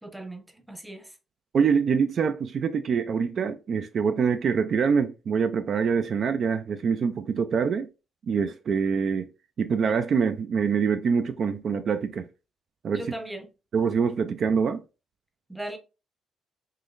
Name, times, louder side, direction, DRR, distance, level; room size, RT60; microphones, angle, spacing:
voice 1, 0.0-1.1 12.9-13.5 15.5-15.8, right 1 dB, 5° right, 0.6 m, -38 dB
voice 2, 1.5-7.9 8.3-9.3 9.6-12.3 12.8-13.1 13.7-14.8, right 6 dB, 50° right, 0.3 m, -25 dB
3.7 x 3.0 x 2.4 m
cardioid pair, 125°, 0 cm